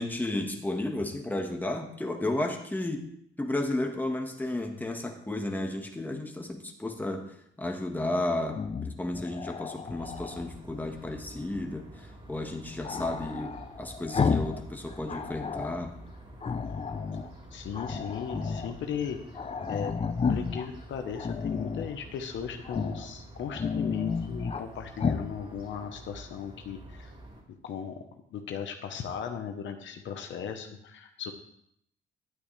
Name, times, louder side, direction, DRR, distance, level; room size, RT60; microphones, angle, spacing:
voice 1, 0.0-3.1 3.4-15.9, left 1 dB, 10° left, 2 dB, 1.5 m, -33 dB
Growling, 8.5-10.5 12.8-14.6 14.9-15.8 16.4-17.3 17.7-18.7 19.0-19.1 19.3-20.7 21.1-21.9 22.6-23.1 23.4-24.6 25.0-25.3, left 5 dB, 30° left, 0.7 m, -32 dB
sound 1, 9.9-27.4, right 1 dB, 30° right, 3.6 m, -48 dB
voice 2, 17.5-19.4 19.7-19.9 20.3-27.1 27.6-28.0 28.3-31.3, left 7 dB, 70° left, 5 dB, 1.1 m, -37 dB
11.5 x 8.6 x 3.3 m, 0.72 s
cardioid pair, 90°, 20 cm